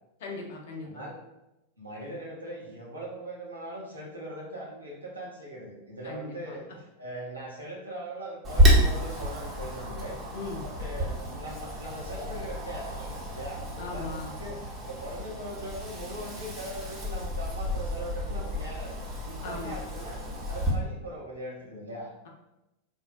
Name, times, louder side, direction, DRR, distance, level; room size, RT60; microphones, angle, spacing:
voice 1, 0.2-1.1 6.0-6.6 10.3-10.6 13.8-14.3 19.4-19.8, left 3 dB, 55° left, 0 dB, 0.6 m, -38 dB
voice 2, 0.8-1.2 1.8-10.2 10.6-20.2 20.5-22.1, right 1 dB, 85° right, -5 dB, 0.8 m, -40 dB
Wind, 8.4-20.7, equal, 25° right, 0.8 m, -29 dB
3.3 x 2.2 x 2.5 m, 0.94 s
figure-of-eight pair, 90°, 0 cm